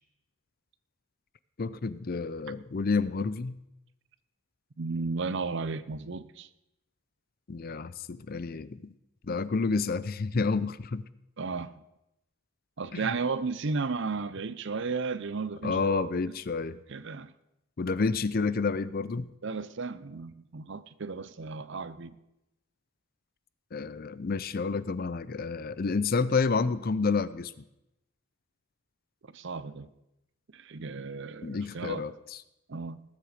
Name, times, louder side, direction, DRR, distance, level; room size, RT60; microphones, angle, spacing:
voice 1, 1.6-3.6 7.5-8.9 9.2-11.1 12.9-13.1 15.6-16.8 17.8-19.3 23.7-27.5 31.4-32.4, left 4 dB, 40° left, 0.5 m, -29 dB
voice 2, 4.8-6.5 11.4-11.7 12.8-16.1 16.9-17.3 19.4-22.2 29.3-29.9 30.5-32.2 32.7-33.0, right 4 dB, 55° right, 0.6 m, -34 dB
19.0 x 7.6 x 5.0 m
head